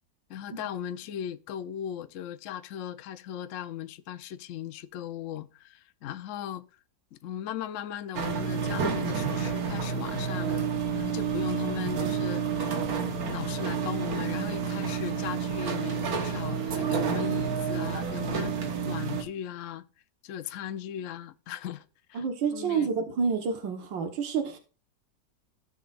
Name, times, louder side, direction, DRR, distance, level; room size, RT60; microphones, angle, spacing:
voice 1, 0.3-6.6 7.1-10.7 10.9-12.7 13.2-18.6 18.8-19.9 20.2-21.8 22.1-22.2 22.5-22.9, left 10 dB, 65° left, 0.7 m, -37 dB
sound 1, 8.2-19.2, right 6 dB, 55° right, 1.5 m, -29 dB
voice 2, 22.2-24.6, right 6 dB, 80° right, 2.1 m, -29 dB
16.5 x 6.4 x 2.4 m
omnidirectional pair, 2.0 m